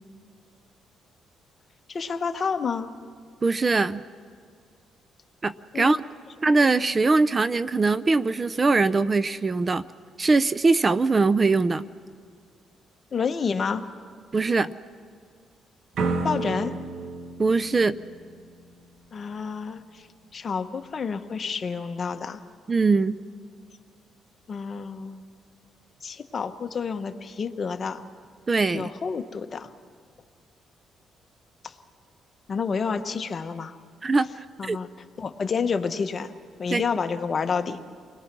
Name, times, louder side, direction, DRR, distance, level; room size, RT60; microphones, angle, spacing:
voice 1, 1.9-2.9 5.7-6.0 13.1-13.8 16.2-16.7 19.1-20.1 20.3-22.4 24.5-25.2 26.0-28.0 28.7-29.7 31.6-31.7 32.5-33.7 34.6-34.9 35.2-36.3 36.6-37.8, left 5 dB, 40° left, 8 dB, 1.2 m, -29 dB
voice 2, 3.4-4.0 5.4-6.0 6.4-9.8 10.2-11.9 14.3-14.7 17.4-18.0 22.7-23.2 28.5-28.9 34.0-34.8 36.7-36.8, right 3 dB, 30° right, 15 dB, 0.6 m, -22 dB
sound 1, 15.9-18.8, right 3 dB, 65° right, 1.8 m, -31 dB
29.5 x 21.0 x 6.1 m, 2.1 s
cardioid pair, 90°, 0 cm